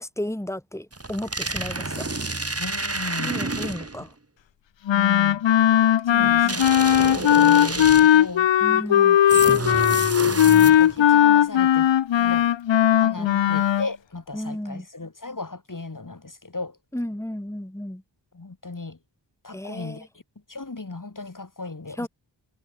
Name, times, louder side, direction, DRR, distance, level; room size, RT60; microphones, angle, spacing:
voice 1, 0.0-2.1 3.2-4.1 6.1-6.6 8.6-9.2 13.2-13.6 14.3-14.8 16.9-18.0 19.5-20.0 22.0-22.1, left 1 dB, 5° left, 2.6 m, -33 dB
sound 1, 0.9-4.1 6.5-8.3 9.3-11.0, right 2 dB, 30° right, 2.5 m, -29 dB
voice 2, 2.6-3.4 4.9-5.4 6.1-9.1 9.6-9.9 10.2-12.5 13.0-16.8 18.3-19.0 19.4-20.1 20.5-22.1, left 3 dB, 45° left, 2.6 m, -36 dB
Wind instrument woodwind instrument, 4.9-13.9, left 10 dB, 75° left, 0.6 m, -18 dB
wide cardioid pair, 60°, 46 cm